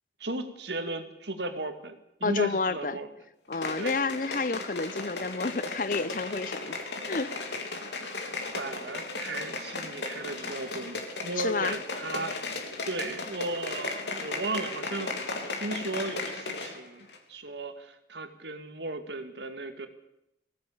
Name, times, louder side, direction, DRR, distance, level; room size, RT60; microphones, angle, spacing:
voice 1, 0.2-3.1 3.8-4.0 8.4-12.4 12.9-15.1 15.4-19.9, right 2 dB, 85° right, 2.3 m, -36 dB
voice 2, 2.2-3.0 3.5-6.8 7.1-7.3 11.4-11.8, left 3 dB, 50° left, 0.7 m, -30 dB
sound 1, 3.5-16.8 17.1-17.2, left 3 dB, 85° left, 3.4 m, -36 dB
20.0 x 17.0 x 8.7 m
head